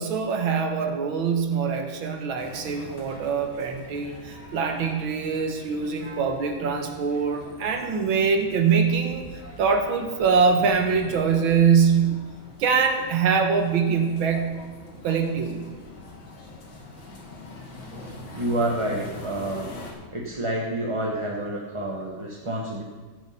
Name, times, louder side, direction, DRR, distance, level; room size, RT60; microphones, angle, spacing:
voice 1, 0.0-9.3 9.6-12.2 12.6-14.6 15.0-15.7, right 6 dB, 70° right, 5 dB, 1.9 m, -23 dB
sound 1, 2.4-19.9, left 2 dB, 65° left, 2.8 m, -44 dB
voice 2, 18.0-19.7 20.1-22.8, right 1 dB, 25° right, -1 dB, 0.7 m, -29 dB
15.0 x 6.3 x 5.7 m, 1.3 s
omnidirectional pair, 2.3 m